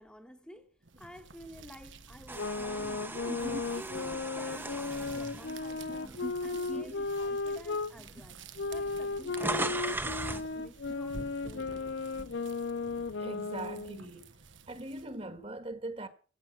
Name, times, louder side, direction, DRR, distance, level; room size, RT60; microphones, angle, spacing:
voice 1, 0.0-3.5 3.7-8.4 8.7-12.0, equal, 5° left, 1.3 m, -51 dB
sound 1, 0.8-15.3, right 4 dB, 70° right, 1.2 m, -51 dB
sound 2, 2.3-7.9 8.6-14.0, left 3 dB, 65° left, 0.6 m, -35 dB
sound 3, 2.3-6.5 7.0-7.2 8.1-8.2 8.4-10.5, right 2 dB, 10° right, 0.9 m, -38 dB
voice 2, 3.3-3.7 6.2-6.3 6.7-6.9 8.0-8.1 13.2-14.2 14.7-16.1, right 1 dB, 30° right, 1.6 m, -40 dB
16.0 x 7.0 x 9.1 m
head